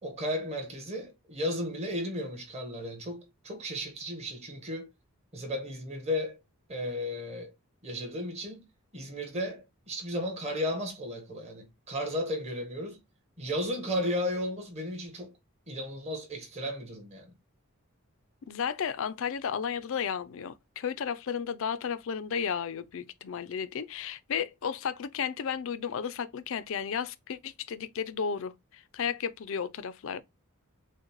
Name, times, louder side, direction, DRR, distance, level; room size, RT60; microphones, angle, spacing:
voice 1, 0.0-4.9 5.3-6.4 6.7-7.5 7.8-8.7 8.9-13.0 13.4-15.3 15.7-17.3, left 1 dB, 30° right, 1.2 m, -34 dB
voice 2, 18.5-30.2, left 7 dB, 60° left, 0.4 m, -33 dB
6.3 x 2.2 x 3.0 m
head